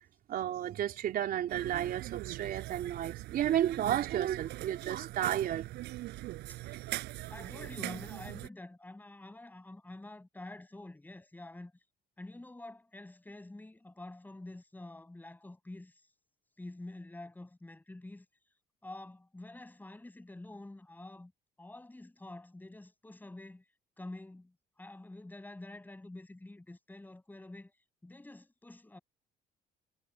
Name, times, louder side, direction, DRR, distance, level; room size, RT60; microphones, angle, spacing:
voice 1, 0.3-5.8, right 11 dB, 60° right, 3.7 m, -32 dB
sound 1, 1.5-8.5, right 17 dB, 85° right, 6.1 m, -41 dB
voice 2, 6.5-6.9 7.3-11.7 12.2-15.9 16.6-18.3 18.8-21.3 21.6-23.6 24.0-27.7 28.0-29.0, left 2 dB, 10° left, 7.8 m, -48 dB
cardioid pair, 110°, 17 cm